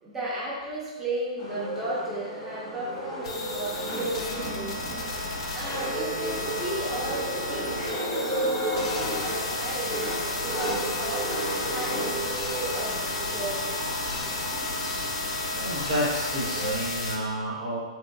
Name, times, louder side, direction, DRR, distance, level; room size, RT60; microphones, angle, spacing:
voice 1, 0.0-10.0 10.4-11.3 11.7-13.7, right 1 dB, 15° right, -7 dB, 0.7 m, -35 dB
sound 1, 1.4-16.7, right 1 dB, 35° left, 0.8 m, -33 dB
sound 2, 3.2-17.2, left 2 dB, 55° left, 0.4 m, -33 dB
voice 2, 15.5-17.8, equal, 55° right, -4 dB, 0.5 m, -30 dB
2.7 x 2.1 x 2.2 m, 1.3 s
figure-of-eight pair, 110°, 3 cm